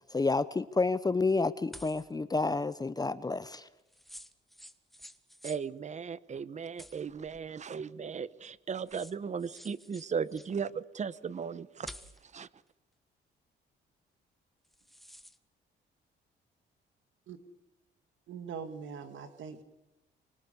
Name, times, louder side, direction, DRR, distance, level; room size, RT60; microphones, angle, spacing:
voice 1, 0.1-3.7, left 3 dB, 20° left, 15 dB, 0.8 m, -29 dB
sound 1, 1.7-2.1 3.9-5.6 6.8-7.5 8.5-8.6 8.9-10.5 11.8-12.3 14.6-15.4, equal, ahead, 1.5 m, -50 dB
voice 2, 5.4-11.9 12.3-12.5, right 6 dB, 35° right, 18 dB, 1.0 m, -36 dB
voice 3, 18.3-19.6, right 6 dB, 75° right, 9 dB, 2.0 m, -42 dB
25.5 x 24.5 x 7.0 m, 0.94 s
cardioid pair, 90°, 20 cm